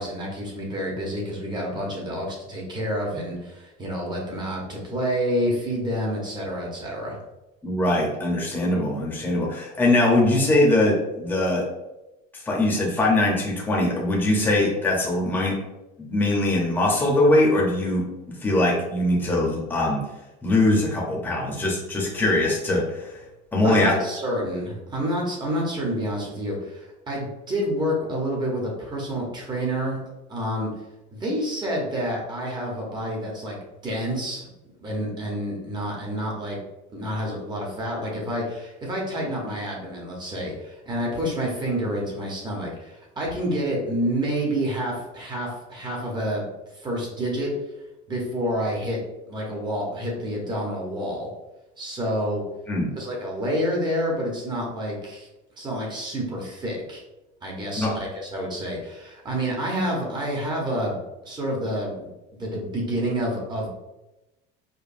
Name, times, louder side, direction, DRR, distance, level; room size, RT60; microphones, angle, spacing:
voice 1, 0.0-7.2 23.6-30.0 30.3-30.7 31.1-33.6 33.8-34.5 34.8-36.6 36.9-46.4 46.7-47.5 48.1-49.0 49.3-51.3 51.8-52.4 52.9-55.3 55.6-57.0 57.4-61.0 61.2-63.7, equal, 20° right, -2 dB, 0.9 m, -28 dB
voice 2, 7.6-11.6 12.3-15.6 16.0-18.0 18.4-20.0 20.4-23.1 23.5-23.9 52.7-52.9 57.8-57.9, left 1 dB, 10° left, -3 dB, 0.8 m, -22 dB
5.1 x 2.2 x 2.6 m, 0.98 s
cardioid pair, 155°, 21 cm